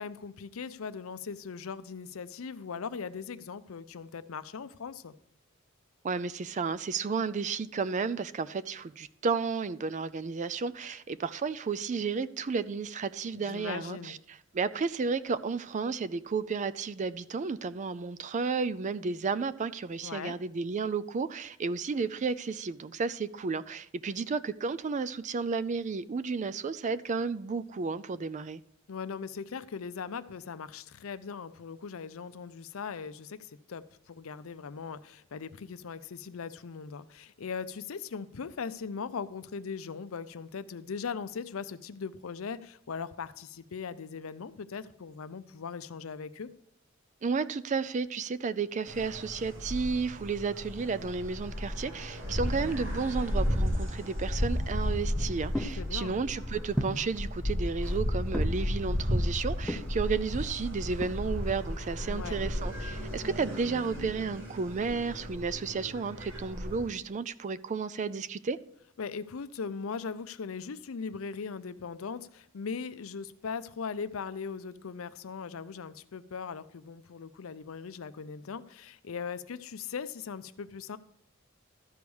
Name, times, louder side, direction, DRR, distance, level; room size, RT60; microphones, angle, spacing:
voice 1, 0.0-5.1 13.3-14.2 20.0-20.4 28.9-46.5 55.8-56.2 62.0-62.4 69.0-81.0, left 5 dB, 85° left, 0.5 m, -39 dB
voice 2, 6.0-14.2 14.5-28.6 47.2-68.6, right 4 dB, 35° right, 0.4 m, -32 dB
sound 1, 48.9-66.9, equal, 80° right, 3.0 m, -33 dB
sound 2, 54.6-63.0, equal, 5° left, 0.7 m, -40 dB
13.0 x 4.8 x 7.0 m
head